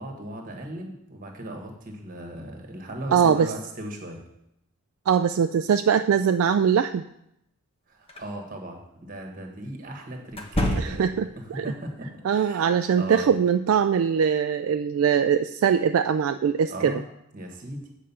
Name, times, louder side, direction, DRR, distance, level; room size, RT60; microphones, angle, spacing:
voice 1, 0.0-4.2 7.9-12.7 12.9-13.3 16.7-17.1 17.3-17.9, right 1 dB, 40° right, 2 dB, 1.4 m, -37 dB
voice 2, 3.1-3.5 5.1-7.0 10.8-11.7 12.2-17.0, right 7 dB, 65° right, 9 dB, 0.3 m, -22 dB
sound 1, 8.1-8.3 10.3-11.3, equal, 25° left, 1.0 m, -28 dB
7.6 x 5.0 x 6.9 m, 0.80 s
head